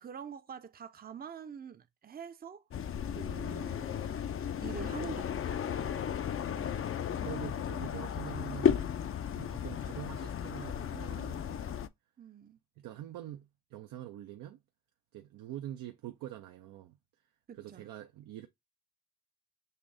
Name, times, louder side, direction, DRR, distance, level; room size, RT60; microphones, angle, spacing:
voice 1, 0.0-2.6 3.1-4.2 4.6-5.6 7.2-7.4 12.2-12.6 17.5-17.9, right 7 dB, 30° right, 0.5 m, -46 dB
sound 1, 2.7-11.9, left 8 dB, 45° left, 0.4 m, -34 dB
voice 2, 6.4-8.9 9.4-11.9 12.8-14.6 15.1-17.0 17.6-18.5, right 12 dB, 80° right, 0.5 m, -45 dB
6.6 x 2.6 x 2.5 m
supercardioid pair, 45°, 33 cm